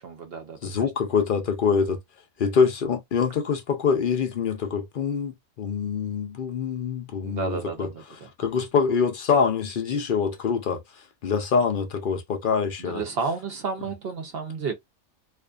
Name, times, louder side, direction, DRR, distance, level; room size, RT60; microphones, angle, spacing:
voice 1, 0.0-0.7 7.2-8.3 12.8-14.7, right 5 dB, 55° right, 0.8 m, -32 dB
voice 2, 0.6-2.0 2.4-7.9 8.4-10.8 11.2-13.0, left 6 dB, 60° left, 0.5 m, -25 dB
2.5 x 2.4 x 2.3 m
omnidirectional pair, 1.4 m